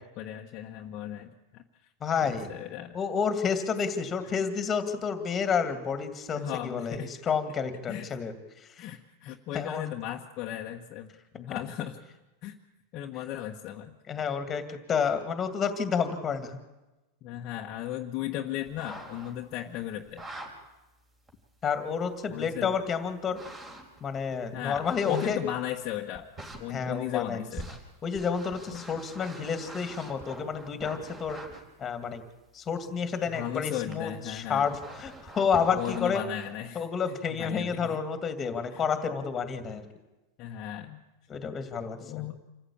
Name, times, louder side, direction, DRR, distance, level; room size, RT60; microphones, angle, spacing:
voice 1, 0.2-1.6 2.2-2.9 6.3-7.1 7.9-8.2 8.8-11.1 11.3-12.0 12.4-12.6 12.9-14.0 17.2-20.2 22.3-22.7 24.5-26.3 26.6-27.8 28.7-28.9 33.3-34.8 35.7-36.8 37.4-38.0 38.7-38.8 40.4-41.0 42.0-42.3, left 12 dB, 35° left, 1 dB, 1.3 m, -36 dB
voice 2, 2.0-2.5 2.9-8.9 9.5-9.8 14.1-16.6 21.6-23.4 24.0-25.4 26.7-27.5 28.0-31.4 31.8-32.2 32.5-36.2 36.7-39.9 41.3-42.3, left 6 dB, 20° left, 9 dB, 2.3 m, -30 dB
sound 1, 18.7-19.5 20.0-20.5 21.3-21.4 23.3-24.0 24.8-25.6 26.1-26.6 27.6-31.6 33.9-34.0 34.4-36.1, right 2 dB, 15° right, 3.7 m, -44 dB
27.0 x 15.0 x 8.7 m, 1.1 s
supercardioid pair, 155°, 0 cm